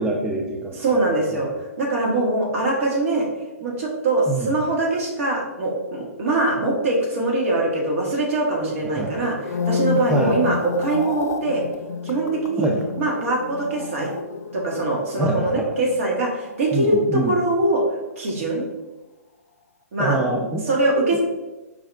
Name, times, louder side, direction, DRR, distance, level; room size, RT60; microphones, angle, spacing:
voice 1, 0.0-0.8 1.3-1.4 4.3-4.5 8.8-9.2 10.1-10.4 12.6-12.8 15.2-15.7 16.7-17.3 20.0-20.6, right 1 dB, 5° right, 0 dB, 0.3 m, -24 dB
voice 2, 0.7-1.5 1.8-3.3 3.6-11.6 12.0-12.7 13.0-14.1 14.5-17.8 18.2-18.6 19.9-20.2 20.7-21.2, right 2 dB, 60° right, -2 dB, 1.2 m, -22 dB
sound 1, 9.3-17.7 17.9-18.3, left 6 dB, 80° left, 0.4 m, -31 dB
4.7 x 2.4 x 3.2 m, 1.1 s
hypercardioid pair, 130°, 8 cm